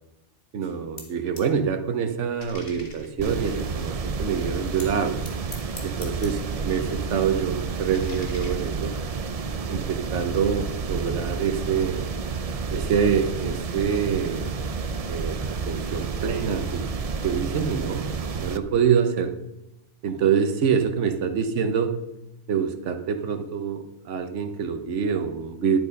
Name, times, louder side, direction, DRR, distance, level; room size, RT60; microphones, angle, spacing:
voice 1, 0.5-5.2 5.8-8.9 9.7-12.0 12.7-14.6 15.1-16.9 17.2-18.1 18.4-19.3 20.0-21.9 22.5-25.8, right 7 dB, 80° right, 7 dB, 1.2 m, -26 dB
sound 1, 0.6-1.6 1.8-4.1 4.8-6.7 7.0-9.1, left 2 dB, 50° left, 2.2 m, -45 dB
sound 2, 3.2-18.6, right 4 dB, 40° right, 0.6 m, -30 dB
11.0 x 8.7 x 5.3 m, 0.95 s
omnidirectional pair, 1.2 m